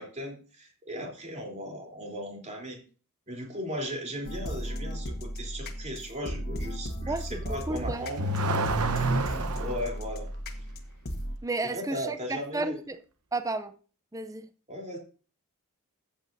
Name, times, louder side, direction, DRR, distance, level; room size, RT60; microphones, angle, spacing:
voice 1, 0.0-2.8 3.3-8.3 9.1-10.3 11.7-12.8 14.7-15.0, equal, 35° right, 3.4 m, -37 dB
sound 1, 4.2-11.4, equal, 45° left, 1.5 m, -36 dB
voice 2, 7.1-8.1 11.4-13.0 13.3-13.8 14.1-14.5, right 2 dB, 15° right, 0.5 m, -32 dB
Car / Accelerating revving vroom, 7.6-9.9, right 2 dB, 75° right, 1.0 m, -28 dB
14.5 x 8.4 x 2.7 m
head